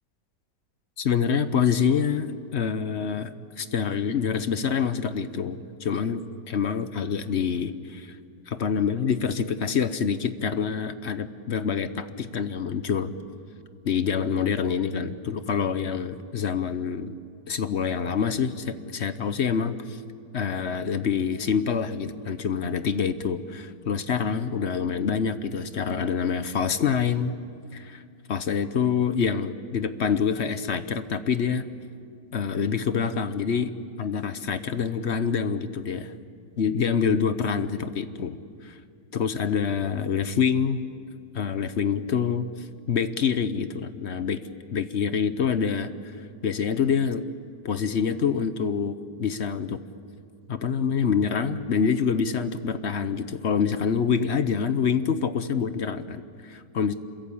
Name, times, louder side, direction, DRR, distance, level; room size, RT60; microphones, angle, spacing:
voice 1, 1.0-8.2 8.5-13.1 13.8-17.1 17.5-20.0 20.3-27.4 27.7-28.0 28.3-31.7 32.3-33.7 34.0-36.1 36.6-38.4 38.6-38.8 39.1-40.8 41.3-44.4 44.7-45.9 46.4-47.2 47.6-49.8 50.5-56.9, left 6 dB, 50° left, 11 dB, 1.0 m, -26 dB
27.0 x 22.0 x 8.5 m, 2.4 s
omnidirectional pair, 1.8 m